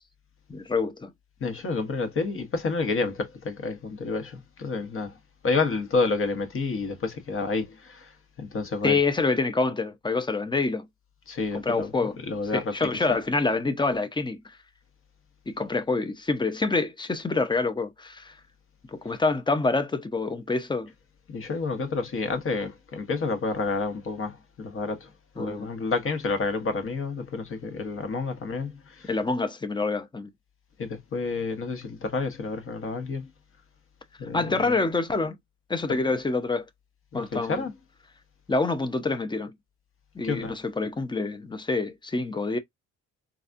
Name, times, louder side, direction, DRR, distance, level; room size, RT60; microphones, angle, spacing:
voice 1, 0.5-1.1 8.8-10.9 11.5-12.2 12.5-14.4 15.5-18.3 18.9-20.9 25.4-25.7 29.1-30.3 34.3-35.4 35.7-36.7 37.1-37.6 38.5-39.5 40.1-42.6, left 3 dB, 15° left, 0.6 m, -26 dB
voice 2, 1.4-5.2 5.4-9.0 11.3-11.9 12.2-12.7 21.3-29.1 30.8-33.3 34.2-34.8 35.9-36.0 37.1-37.8 40.2-40.5, left 4 dB, 45° left, 1.1 m, -29 dB
4.0 x 2.4 x 2.5 m
cardioid pair, 90°, 30 cm